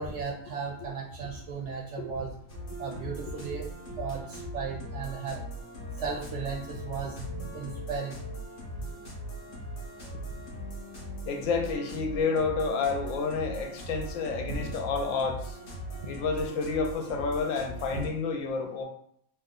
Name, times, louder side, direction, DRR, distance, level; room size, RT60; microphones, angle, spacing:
voice 1, 0.0-2.3 2.8-3.6 4.0-5.4 6.0-8.2 14.6-14.7 16.0-16.1 17.9-18.0, right 4 dB, 65° right, -1 dB, 0.8 m, -35 dB
sound 1, 2.5-18.1, equal, 45° left, 0.9 m, -40 dB
voice 2, 11.3-15.6 16.1-18.8, left 4 dB, 75° left, 4 dB, 1.0 m, -30 dB
3.0 x 2.1 x 3.7 m, 0.69 s
omnidirectional pair, 1.5 m